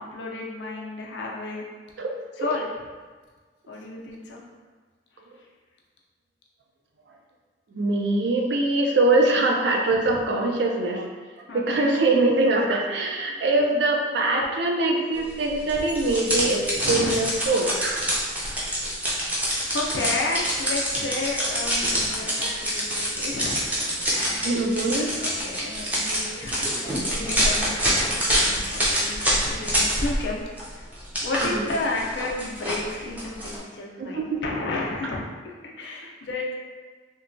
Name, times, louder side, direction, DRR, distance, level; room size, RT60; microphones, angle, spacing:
voice 1, 0.0-1.6 2.4-2.7 3.7-4.4 5.4-5.5 9.9-10.2 11.5-11.9 16.7-17.3 19.3-30.4 30.7-30.8 31.2-35.2 35.8-36.5, left 2 dB, 75° left, -1 dB, 0.5 m, -32 dB
voice 2, 7.7-11.1 11.5-18.1 22.4-22.6 24.4-25.1 31.5-31.7 34.0-34.4, right 2 dB, 65° right, 1 dB, 0.4 m, -23 dB
sound 1, 15.7-30.3 30.6-33.6, equal, 10° right, 0.5 m, -26 dB
3.0 x 2.1 x 2.5 m, 1.4 s
head